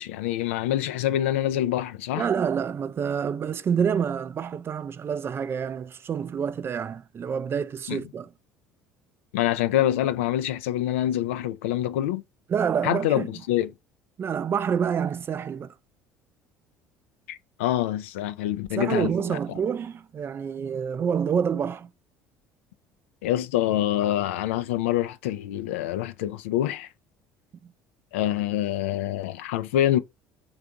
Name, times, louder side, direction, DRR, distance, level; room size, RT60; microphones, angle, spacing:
voice 1, 0.0-2.3 7.9-8.0 9.3-12.2 12.8-13.7 17.3-19.4 23.2-26.9 28.1-30.0, left 12 dB, 85° left, 0.4 m, -26 dB
voice 2, 2.2-8.3 12.5-13.3 14.2-15.7 18.8-21.9 27.6-27.7, right 7 dB, 35° right, 0.3 m, -27 dB
3.4 x 2.4 x 3.8 m
hypercardioid pair, 70°, 7 cm